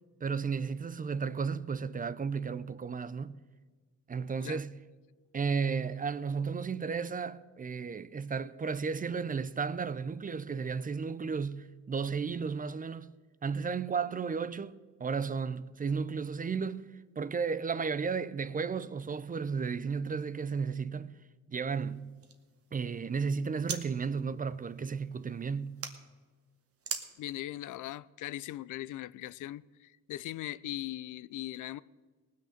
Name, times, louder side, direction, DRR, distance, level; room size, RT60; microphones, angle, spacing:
voice 1, 0.2-3.4 4.1-4.8 5.3-13.1 13.4-16.9 17.2-21.1 21.5-22.1 22.7-25.8, right 5 dB, 25° right, 0.5 m, -33 dB
sound 1, 21.7-23.8 24.2-25.9 26.8-27.1, right 6 dB, 45° right, 1.4 m, -43 dB
voice 2, 27.2-31.8, left 14 dB, 70° left, 0.5 m, -40 dB
18.5 x 6.5 x 6.6 m
cardioid pair, 90°, 32 cm